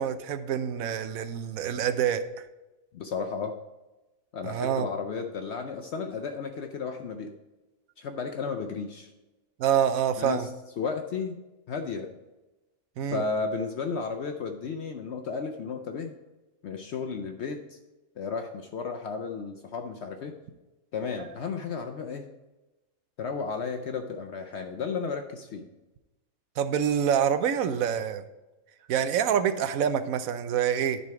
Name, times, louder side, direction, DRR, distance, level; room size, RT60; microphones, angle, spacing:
voice 1, 0.0-2.4 4.4-4.9 9.6-10.5 13.0-13.2 26.6-28.2 28.9-31.0, right 8 dB, 85° right, 10 dB, 1.0 m, -26 dB
voice 2, 2.9-3.5 4.3-7.3 8.0-9.1 10.2-10.5 10.8-11.4 11.7-12.1 13.1-16.1 16.6-17.6 18.2-20.4 20.9-22.3 23.2-25.7, left 5 dB, 65° left, 5 dB, 0.8 m, -33 dB
10.5 x 4.2 x 4.7 m, 1.1 s
omnidirectional pair, 1.4 m